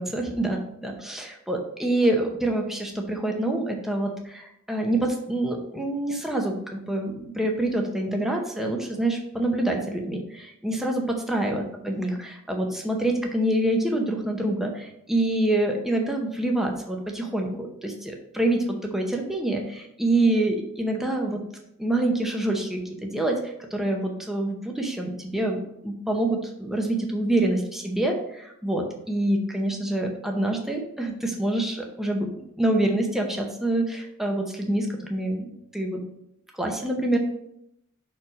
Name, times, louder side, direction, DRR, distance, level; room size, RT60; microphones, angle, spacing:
voice 1, 0.0-21.5 21.8-36.0 36.5-37.2, right 1 dB, ahead, 1 dB, 0.7 m, -26 dB
5.5 x 4.5 x 5.0 m, 0.78 s
head